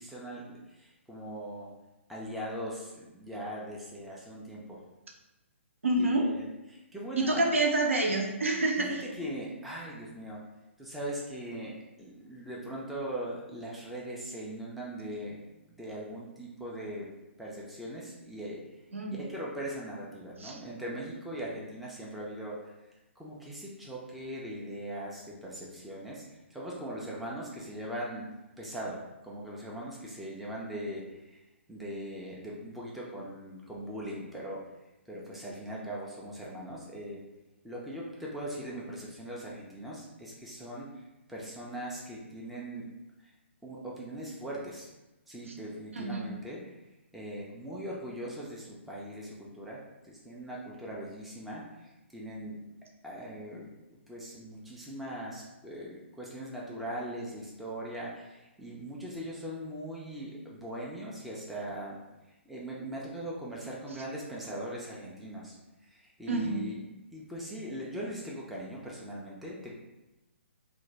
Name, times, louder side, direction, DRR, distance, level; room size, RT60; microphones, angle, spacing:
voice 1, 0.0-1.7 2.1-4.8 6.0-7.5 8.8-10.4 10.8-15.4 15.6-17.1 17.4-18.6 19.1-22.7 23.2-28.3 28.6-31.4 31.7-34.7 35.1-37.2 37.6-42.9 43.2-43.3 43.6-44.9 45.3-46.6 47.1-52.6 53.0-62.0 62.5-65.5 65.9-66.8 67.1-69.7, right 1 dB, ahead, -5 dB, 0.3 m, -40 dB
voice 2, 5.8-6.3 7.2-9.0 18.9-19.2 20.4-20.6 45.9-46.3 66.3-66.7, right 2 dB, 75° right, 1 dB, 0.5 m, -28 dB
2.5 x 2.1 x 3.1 m, 1.0 s
figure-of-eight pair, 130°, 7 cm